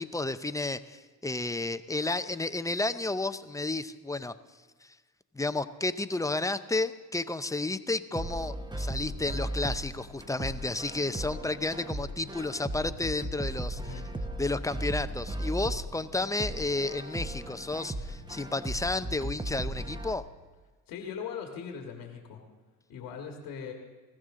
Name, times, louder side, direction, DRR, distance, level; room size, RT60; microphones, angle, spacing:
voice 1, 0.0-4.3 5.3-13.9 14.4-20.2, left 2 dB, 10° left, 12 dB, 0.6 m, -32 dB
sound 1, 8.1-20.1, right 1 dB, 15° right, 1.0 m, -36 dB
voice 2, 20.9-22.4 22.9-23.7, left 7 dB, 90° left, 2 dB, 1.9 m, -40 dB
21.0 x 15.5 x 3.8 m, 1.4 s
cardioid pair, 85°, 35 cm